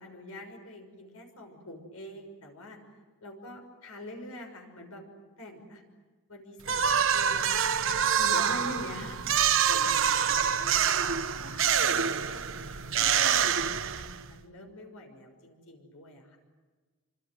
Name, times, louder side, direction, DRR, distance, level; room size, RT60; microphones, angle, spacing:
voice 1, 0.0-2.8 3.2-5.8 6.3-12.4 13.0-16.4, left 1 dB, 75° left, 4 dB, 6.1 m, -45 dB
sound 1, 6.7-14.3, right 8 dB, 60° right, 1.1 m, -26 dB
27.0 x 26.0 x 7.9 m, 1.3 s
head